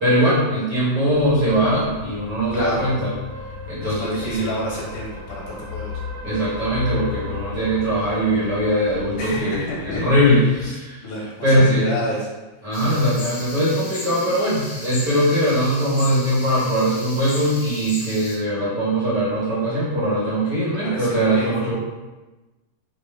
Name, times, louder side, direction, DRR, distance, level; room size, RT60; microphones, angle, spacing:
voice 1, 0.0-3.1 3.7-4.5 6.2-11.0 11.4-11.9 12.6-21.8, equal, 50° right, -10 dB, 1.3 m, -21 dB
sound 1, 1.1-10.7, left 3 dB, 80° right, 1.4 m, -35 dB
voice 2, 2.5-3.0 3.8-5.9 9.2-10.1 10.6-10.8 11.0-12.3 20.7-21.5, left 1 dB, 75° left, -3 dB, 2.0 m, -30 dB
sound 2, 12.7-18.4, left 2 dB, 55° left, 1.9 m, -35 dB
5.2 x 2.4 x 3.3 m, 1.2 s
omnidirectional pair, 3.7 m